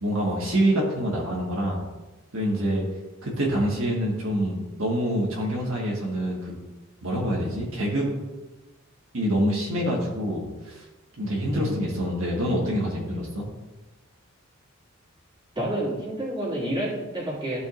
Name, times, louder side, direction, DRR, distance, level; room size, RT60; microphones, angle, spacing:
voice 1, 0.0-1.8 2.3-2.8 3.2-6.6 7.0-8.1 9.1-10.8 11.2-13.4, equal, 70° right, -3 dB, 1.6 m, -26 dB
voice 2, 15.6-17.6, right 1 dB, 20° right, -7 dB, 2.5 m, -29 dB
13.0 x 5.1 x 2.6 m, 1.1 s
head